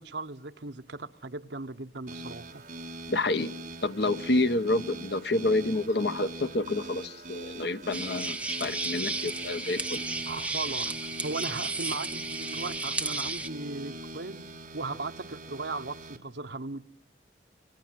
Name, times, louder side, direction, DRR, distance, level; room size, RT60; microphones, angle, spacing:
voice 1, 0.0-2.6 10.3-16.9, right 3 dB, 70° right, 1.1 m, -37 dB
sound 1, 2.1-16.2, right 1 dB, 45° right, 2.9 m, -43 dB
voice 2, 3.1-3.5 3.8-10.0, left 2 dB, 65° left, 1.1 m, -28 dB
sound 2, 7.9-13.5, right 3 dB, 5° right, 1.0 m, -33 dB
27.5 x 23.5 x 7.6 m
head